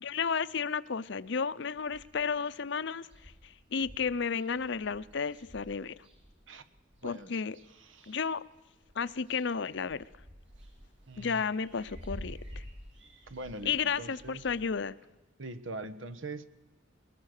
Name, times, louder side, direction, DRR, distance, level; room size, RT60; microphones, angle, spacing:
voice 1, 0.0-6.0 7.0-7.6 8.1-8.4 9.0-10.0 11.2-12.6 13.6-14.9, left 6 dB, 65° left, 16 dB, 0.7 m, -33 dB
sound 1, 1.8-2.4 2.7-2.8 3.0-7.1 7.6-8.5 8.7-14.6, equal, 70° right, 5.9 m, -50 dB
voice 2, 7.0-7.4 7.7-8.2 11.1-11.4 13.3-14.4 15.4-16.4, right 2 dB, 85° right, 13 dB, 1.2 m, -42 dB
21.0 x 21.0 x 6.6 m, 1.1 s
head